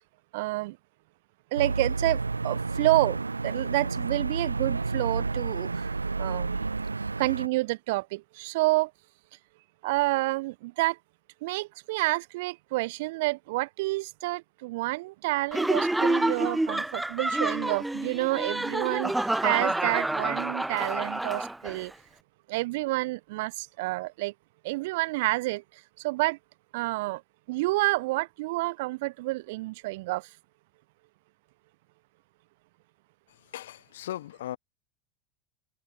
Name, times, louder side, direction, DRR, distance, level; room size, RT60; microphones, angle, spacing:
voice 1, 0.3-0.8 1.5-5.9 6.2-6.7 7.2-8.9 9.8-11.0 11.4-21.9 22.5-24.3 24.6-25.6 26.0-26.4 26.7-27.2 27.5-30.3, right 21 dB, 55° right, 0.9 m, -29 dB
sound 1, 1.6-7.5, right 3 dB, 85° right, 0.9 m, -30 dB
Laughter, 15.5-21.8, right 1 dB, 5° right, 0.3 m, -28 dB
voice 2, 33.5-34.6, left 13 dB, 65° left, 0.9 m, -37 dB
figure-of-eight pair, 80°, 0 cm